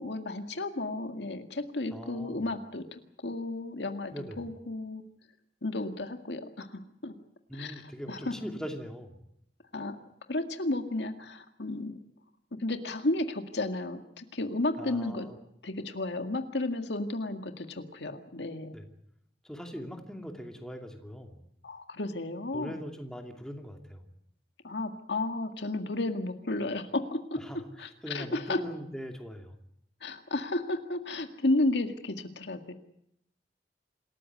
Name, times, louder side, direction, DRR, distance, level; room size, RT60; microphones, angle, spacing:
voice 1, 0.0-5.0 5.6-7.2 7.5-7.8 8.1-8.3 9.7-10.0 10.3-12.0 12.6-15.3 15.6-18.8 21.6-22.8 24.6-27.4 27.8-28.6 30.0-32.7, left 2 dB, 85° left, 6 dB, 2.0 m, -33 dB
voice 2, 1.9-2.4 4.1-4.4 7.5-9.1 14.8-15.4 18.7-18.9 19.4-21.4 22.5-24.1 27.4-29.6, equal, 5° left, 3 dB, 2.6 m, -41 dB
27.0 x 14.0 x 9.4 m, 0.75 s
head